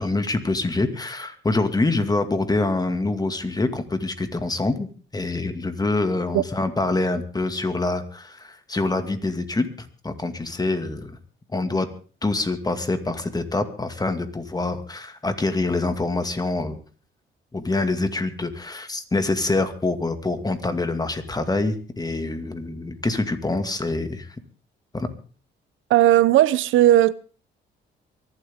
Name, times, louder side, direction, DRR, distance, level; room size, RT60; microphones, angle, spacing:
voice 1, 0.0-9.7 10.0-11.2 11.5-11.9 12.2-16.8 17.5-24.3 24.9-25.1, left 2 dB, 20° left, 2.1 m, -25 dB
voice 2, 25.9-27.1, right 13 dB, 80° right, 0.7 m, -16 dB
23.5 x 12.0 x 3.7 m
cardioid pair, 90°, 20 cm